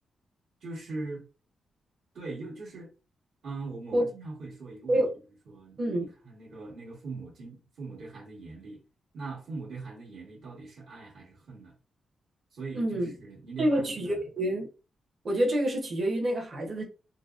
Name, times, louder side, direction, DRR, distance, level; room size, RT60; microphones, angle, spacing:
voice 1, 0.6-1.2 2.1-2.9 3.4-5.0 5.4-8.8 9.1-11.7 12.5-14.2, right 3 dB, 70° right, 1.5 m, -41 dB
voice 2, 12.7-13.1 13.6-14.7 15.2-16.8, right 1 dB, 45° right, 0.9 m, -27 dB
3.9 x 2.0 x 2.4 m
wide cardioid pair, 125°, 0 cm